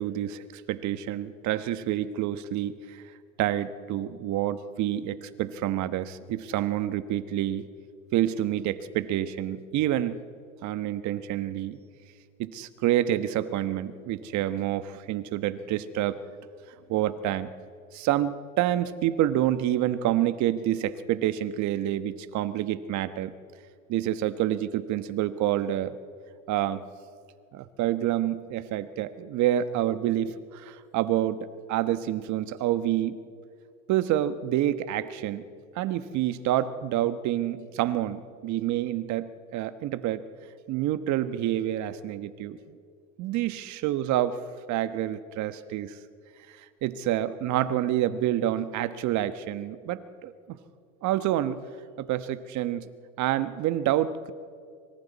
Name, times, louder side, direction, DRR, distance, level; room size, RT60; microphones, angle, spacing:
voice 1, 0.0-3.0 3.4-7.7 8.1-10.2 10.6-11.8 12.4-16.2 16.9-17.5 17.9-23.3 23.9-26.0 26.5-26.8 27.5-33.2 33.9-35.4 35.7-40.2 40.7-42.7 43.2-44.4 44.7-46.0 46.5-50.6 51.0-51.6 52.0-52.9 53.2-54.3, right 12 dB, 50° right, 12 dB, 1.3 m, -28 dB
25.5 x 24.5 x 4.2 m, 2.3 s
supercardioid pair, 100°, 36 cm